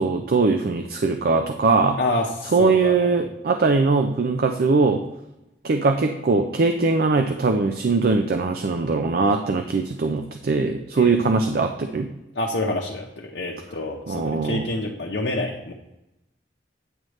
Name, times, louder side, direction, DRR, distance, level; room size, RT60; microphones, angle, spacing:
voice 1, 0.0-2.0 2.5-5.0 5.6-12.1 14.1-14.7, right 4 dB, 55° right, 6 dB, 0.4 m, -21 dB
voice 2, 2.0-3.1 11.0-11.2 12.3-15.7, left 2 dB, 70° left, -1 dB, 0.8 m, -27 dB
8.9 x 3.2 x 6.3 m, 0.90 s
head